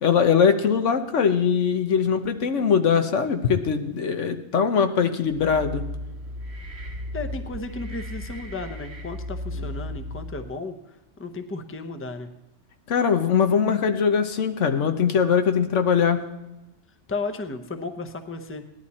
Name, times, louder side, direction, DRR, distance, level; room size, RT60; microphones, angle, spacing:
voice 1, 0.0-5.8 12.9-16.2, left 6 dB, 80° left, 8 dB, 1.3 m, -21 dB
sound 1, 5.3-10.6, left 1 dB, 60° right, 1.7 m, -35 dB
voice 2, 7.1-12.3 17.1-18.6, left 3 dB, 15° left, 7 dB, 0.7 m, -34 dB
17.5 x 11.5 x 4.2 m, 0.98 s
omnidirectional pair, 1.2 m